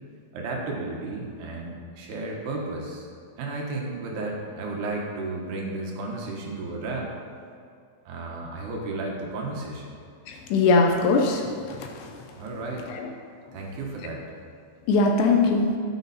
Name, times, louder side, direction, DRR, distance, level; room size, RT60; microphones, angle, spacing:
voice 1, 0.3-3.1 3.4-7.1 8.1-10.0 12.3-12.9 13.5-14.3, right 2 dB, 70° right, -1 dB, 3.1 m, -33 dB
voice 2, 10.3-11.4 11.7-12.1 12.9-13.1 14.9-15.8, left 3 dB, 75° left, 2 dB, 2.8 m, -21 dB
12.5 x 9.4 x 4.2 m, 2.3 s
omnidirectional pair, 5.3 m